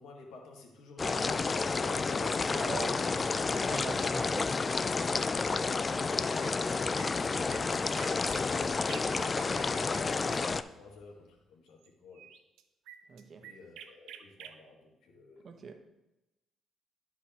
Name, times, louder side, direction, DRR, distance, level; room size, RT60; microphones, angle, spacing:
voice 1, 0.0-3.5 4.0-4.5 4.7-12.3 13.4-15.4, left 3 dB, 85° left, 1.4 m, -51 dB
sound 1, 1.0-10.6, left 4 dB, 30° left, 0.3 m, -30 dB
voice 2, 2.5-3.0 3.6-4.5 13.1-13.5 15.4-15.9, right 5 dB, 50° right, 0.9 m, -42 dB
sound 2, 5.7-6.1 6.4-10.4 11.8-11.9 12.1-14.5, right 10 dB, 90° right, 0.5 m, -50 dB
Boom, 7.8-11.5, left 2 dB, 50° left, 1.6 m, -59 dB
12.0 x 4.6 x 2.9 m
cardioid pair, 90°, 0 cm